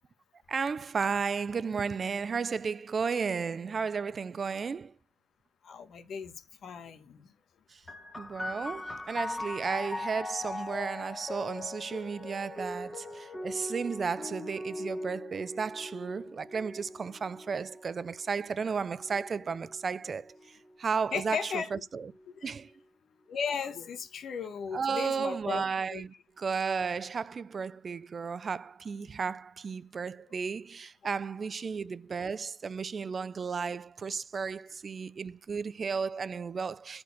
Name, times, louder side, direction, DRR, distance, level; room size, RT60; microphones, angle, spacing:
voice 1, 0.5-4.9 7.7-7.8 8.2-22.1 22.4-22.7 24.7-37.0, right 5 dB, 40° right, 0.5 m, -34 dB
voice 2, 5.6-6.3 6.6-7.3 21.1-21.7 22.4-22.5 23.3-25.6 25.9-26.0, left 6 dB, 60° left, 1.4 m, -36 dB
sound 1, 7.9-21.1 22.0-22.7, left 2 dB, 15° left, 2.1 m, -41 dB
9.3 x 4.5 x 5.9 m
cardioid pair, 90°, 0 cm